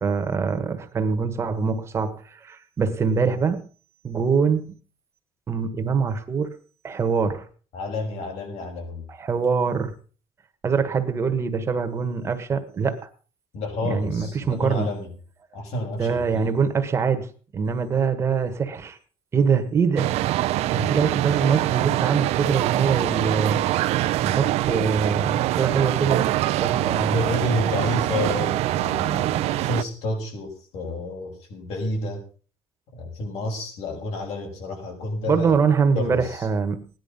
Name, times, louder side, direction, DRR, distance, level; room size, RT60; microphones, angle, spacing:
voice 1, 0.0-3.7 4.0-4.8 5.5-6.5 6.8-7.4 9.1-9.9 10.6-13.0 13.8-14.9 16.0-19.0 19.3-20.1 20.7-23.6 24.2-26.3 26.6-27.2 35.3-36.9, right 5 dB, 25° right, 1.5 m, -24 dB
voice 2, 7.7-9.0 13.5-15.1 15.5-16.6 26.9-32.2 32.9-35.6 35.9-36.5, left 1 dB, 75° left, 6.1 m, -30 dB
sound 1, 20.0-29.8, right 15 dB, 80° right, 0.7 m, -24 dB
17.5 x 10.5 x 5.5 m
cardioid pair, 180°, 11 cm